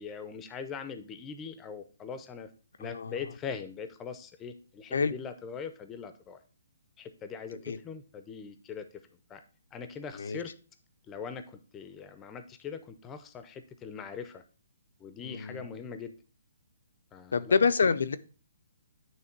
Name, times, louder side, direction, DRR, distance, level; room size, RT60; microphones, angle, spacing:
voice 1, 0.0-2.5 2.8-6.4 7.0-8.9 9.3-9.4 9.7-10.5 11.1-14.4 15.0-16.1 17.1-17.6, left 6 dB, 15° left, 10 dB, 0.6 m, -41 dB
voice 2, 2.8-3.2 4.9-5.1 7.7-7.8 10.1-10.4 15.2-15.7 17.3-18.2, left 5 dB, 80° left, 12 dB, 0.6 m, -27 dB
9.5 x 3.2 x 4.5 m, 0.37 s
hypercardioid pair, 160°, 0 cm